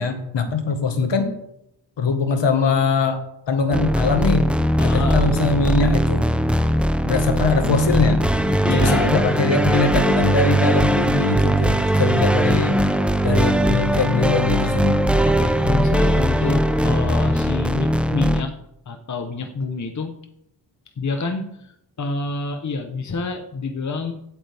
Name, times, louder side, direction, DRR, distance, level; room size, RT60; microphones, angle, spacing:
voice 1, 0.0-1.3 2.0-3.2 3.5-4.5 4.8-6.3 7.0-8.2 8.6-12.8 13.2-15.0, left 4 dB, 70° left, 6 dB, 1.7 m, -22 dB
sound 1, 3.7-18.4, equal, 5° right, 0.6 m, -19 dB
voice 2, 4.8-5.2 8.7-9.1 15.2-18.5 18.9-20.1 21.0-21.7 22.0-24.1, left 3 dB, 40° left, 5 dB, 1.0 m, -27 dB
16.0 x 8.5 x 3.5 m, 0.78 s
wide cardioid pair, 120°, 45 cm